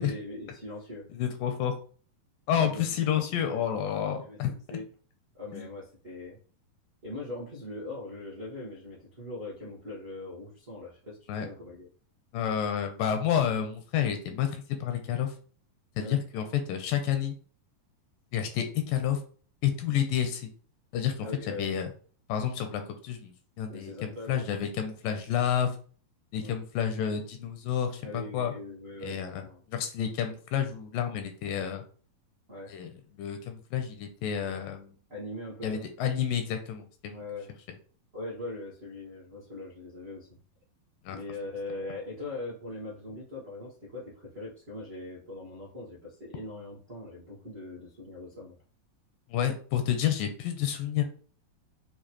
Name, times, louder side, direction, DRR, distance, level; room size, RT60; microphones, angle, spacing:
voice 1, 0.0-1.0 2.5-3.7 4.2-4.9 5.3-6.4 7.0-11.9 16.0-16.2 21.2-21.7 23.7-24.5 26.4-26.6 28.0-29.6 32.5-32.7 35.1-35.9 37.1-37.5 38.1-40.4 41.1-48.6, left 2 dB, 75° right, -7 dB, 0.5 m, -41 dB
voice 2, 1.1-1.7 2.5-4.5 5.5-5.7 11.3-11.5 12.3-15.3 16.0-17.4 18.3-19.2 19.6-20.5 20.9-21.9 22.3-25.7 26.3-28.5 29.0-29.4 29.7-31.8 32.7-32.9 33.2-35.0 35.6-37.2 41.1-41.2 49.3-51.0, left 9 dB, 80° left, 6 dB, 2.2 m, -30 dB
6.9 x 2.4 x 3.0 m, 0.43 s
omnidirectional pair, 4.2 m